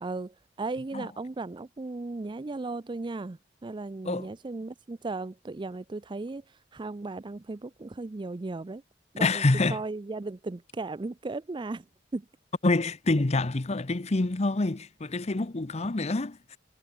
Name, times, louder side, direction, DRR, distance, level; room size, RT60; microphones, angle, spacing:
voice 1, 0.0-6.4 6.7-8.8 9.1-9.4 9.7-11.8 12.1-12.3, right 3 dB, 25° right, 0.4 m, -36 dB
voice 2, 9.2-9.8 12.6-16.6, left 2 dB, 35° left, 0.8 m, -27 dB
head